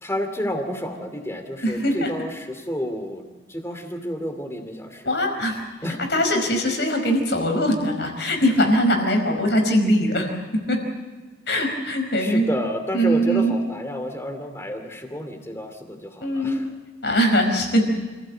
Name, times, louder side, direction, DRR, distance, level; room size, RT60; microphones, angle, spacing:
voice 1, 0.0-5.1 5.8-6.0 12.2-16.7, equal, 15° left, 6 dB, 2.5 m, -30 dB
voice 2, 1.6-2.1 5.0-5.6 6.1-10.3 10.7-10.8 11.5-12.5 12.9-13.5 16.2-16.6 17.0-17.9, equal, 65° left, 4 dB, 5.0 m, -21 dB
28.0 x 15.5 x 7.9 m, 1.3 s
head